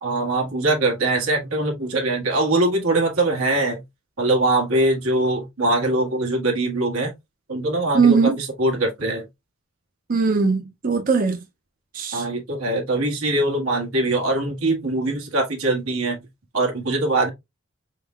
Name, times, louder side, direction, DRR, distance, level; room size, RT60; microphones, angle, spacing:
voice 1, 0.0-3.8 4.2-7.1 7.5-9.3 12.1-16.3 16.5-17.3, right 2 dB, 85° right, 1.6 m, -22 dB
voice 2, 7.9-8.4 10.1-11.4 11.9-12.2, right 5 dB, 40° right, 0.5 m, -19 dB
4.2 x 3.7 x 2.3 m
head